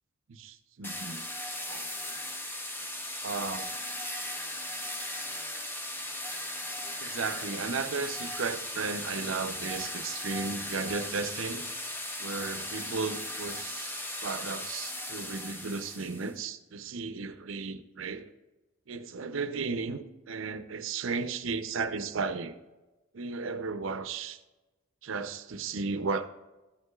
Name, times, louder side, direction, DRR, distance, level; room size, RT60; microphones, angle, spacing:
voice 1, 0.3-1.3 1.7-2.1 3.2-3.7 7.0-11.7 12.2-13.9 14.2-18.3 18.9-22.5 23.1-24.4 25.0-26.3, right 4 dB, 70° right, 0.6 m, -35 dB
sound 1, 0.8-16.3, left 1 dB, 10° left, 0.6 m, -37 dB
13.0 x 9.6 x 2.4 m
head